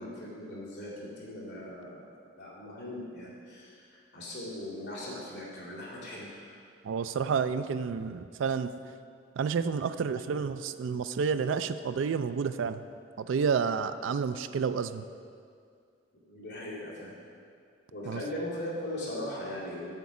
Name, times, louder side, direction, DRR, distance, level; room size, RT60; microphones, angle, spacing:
voice 1, 0.0-2.1 2.4-6.6 16.2-17.2 17.9-19.9, left 1 dB, 60° left, -8 dB, 2.4 m, -39 dB
voice 2, 6.8-8.7 9.4-12.8 13.2-15.0 18.0-18.2, right 6 dB, 75° right, 11 dB, 0.3 m, -30 dB
8.1 x 7.0 x 4.8 m, 2.3 s
head